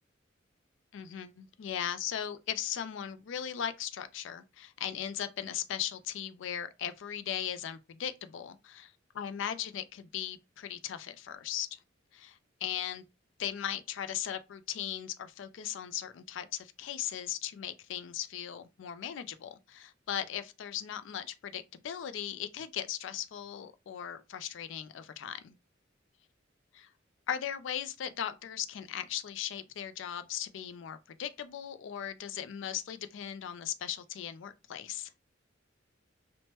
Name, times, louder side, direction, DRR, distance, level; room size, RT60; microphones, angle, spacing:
voice 1, 0.9-11.7 12.1-13.0 13.4-25.6 27.3-35.1, left 10 dB, 70° left, 0.3 m, -38 dB
3.0 x 2.1 x 2.9 m
head